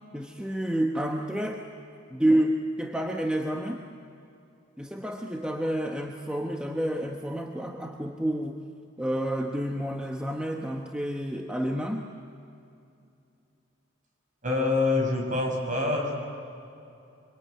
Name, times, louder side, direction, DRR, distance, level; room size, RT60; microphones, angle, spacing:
voice 1, 0.1-1.6 2.1-3.9 4.8-8.6 9.0-12.1, right 1 dB, 5° right, 1 dB, 1.1 m, -29 dB
voice 2, 14.4-16.1, left 3 dB, 40° right, 0 dB, 6.4 m, -25 dB
25.0 x 25.0 x 9.3 m, 2.6 s
head